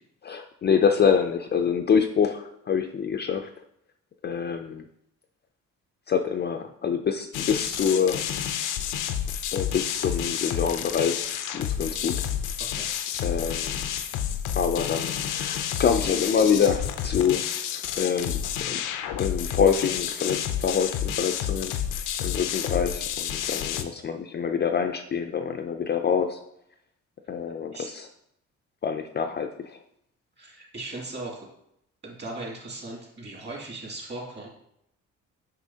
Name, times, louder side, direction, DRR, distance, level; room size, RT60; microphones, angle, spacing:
voice 1, 0.2-3.5 4.2-4.9 6.1-8.3 9.5-11.3 11.5-12.2 13.2-13.8 14.6-18.8 19.2-21.7 22.2-26.4 27.3-28.1 28.8-29.8, left 7 dB, 35° left, 6 dB, 0.4 m, -26 dB
sound 1, 7.3-23.8, left 9 dB, 90° left, 0.5 m, -30 dB
voice 2, 30.4-31.5 32.0-34.5, right 2 dB, 35° right, -2 dB, 2.4 m, -38 dB
6.1 x 5.5 x 2.8 m, 0.76 s
cardioid pair, 90°, 30 cm